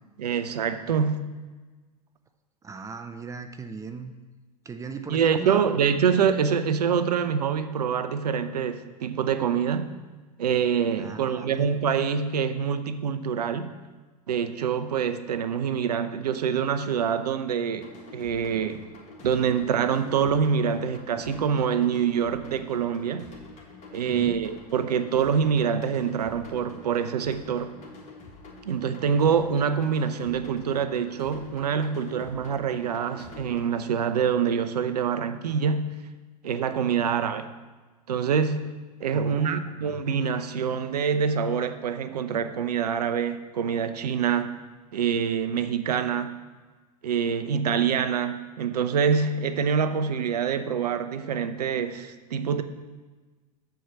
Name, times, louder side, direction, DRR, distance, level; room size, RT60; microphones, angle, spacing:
voice 1, 0.2-1.2 5.1-9.9 10.4-13.7 14.3-18.9 19.2-23.2 23.9-27.7 28.7-35.9 36.4-37.5 38.1-38.8 39.0-44.5 44.9-46.4 47.0-52.6, right 7 dB, 70° right, 11 dB, 0.6 m, -25 dB
voice 2, 2.6-4.1 4.7-5.6 11.0-11.7 24.1-24.4 39.1-40.0, right 5 dB, 15° right, 7 dB, 0.5 m, -37 dB
sound 1, 17.7-33.7, left 2 dB, 35° left, 1.6 m, -47 dB
7.2 x 4.6 x 6.7 m, 1.3 s
figure-of-eight pair, 90°, 21 cm